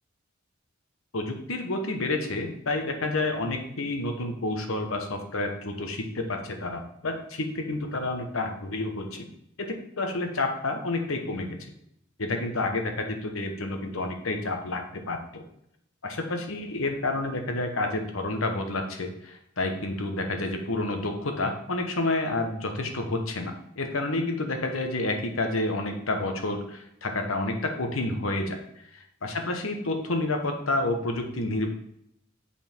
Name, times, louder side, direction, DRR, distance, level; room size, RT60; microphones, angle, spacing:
voice 1, 1.1-9.3 9.6-9.7 10.0-11.6 12.2-15.4 16.0-28.6 29.2-31.7, left 2 dB, 75° left, 5 dB, 1.2 m, -29 dB
7.1 x 5.5 x 4.5 m, 0.75 s
head